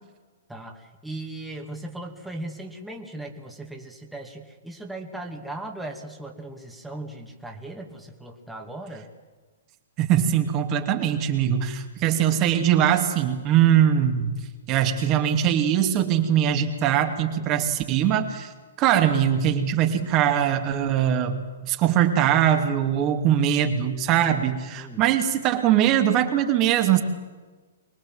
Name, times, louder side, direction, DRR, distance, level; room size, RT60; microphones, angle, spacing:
voice 1, 0.5-9.1 24.8-25.1, right 2 dB, 5° right, 1 dB, 2.4 m, -38 dB
voice 2, 10.0-14.3 14.7-18.5 18.8-27.0, right 10 dB, 30° right, 5 dB, 2.5 m, -21 dB
24.5 x 21.0 x 7.7 m, 1.3 s
figure-of-eight pair, 120°, 0 cm